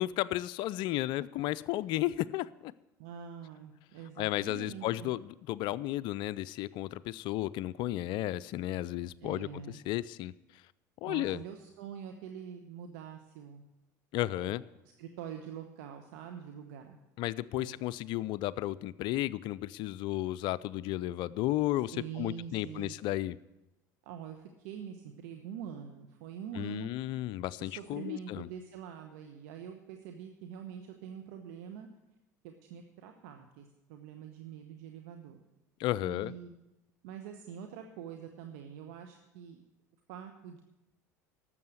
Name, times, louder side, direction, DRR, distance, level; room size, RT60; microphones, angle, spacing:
voice 1, 0.0-2.7 4.2-10.3 11.0-11.4 14.1-14.6 17.2-23.4 26.6-28.5 35.8-36.3, left 15 dB, 55° left, 18 dB, 0.4 m, -33 dB
voice 2, 3.0-5.1 9.2-9.8 11.1-13.6 14.4-14.6 15.0-17.0 17.6-17.8 21.9-23.0 24.0-26.9 27.6-31.9 32.4-35.4 36.0-36.5 37.0-39.6 40.1-40.6, right 8 dB, 70° right, 5 dB, 1.0 m, -45 dB
12.5 x 7.7 x 7.8 m, 0.97 s
hypercardioid pair, 75°, 9 cm